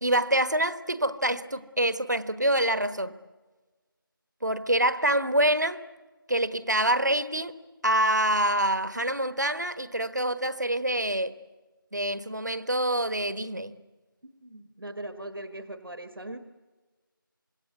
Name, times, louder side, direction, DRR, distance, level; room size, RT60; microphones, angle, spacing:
voice 1, 0.0-3.1 4.4-5.8 6.3-7.6 7.8-11.3 11.9-13.8, right 1 dB, 50° right, 1.2 m, -26 dB
voice 2, 14.2-16.4, right 1 dB, 75° right, 1.6 m, -40 dB
26.0 x 22.0 x 9.4 m
figure-of-eight pair, 180°, 12 cm